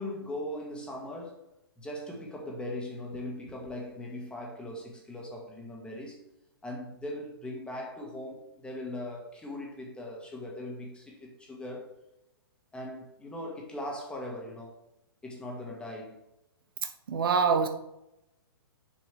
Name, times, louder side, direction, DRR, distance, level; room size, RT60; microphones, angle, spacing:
voice 1, 0.0-1.4 1.8-6.2 6.6-11.9 12.7-14.7 15.2-16.2, left 1 dB, 10° left, 1.7 m, -39 dB
voice 2, 17.1-17.7, right 5 dB, 65° right, 0.9 m, -24 dB
6.9 x 6.0 x 3.4 m
hypercardioid pair, 125°, 13 cm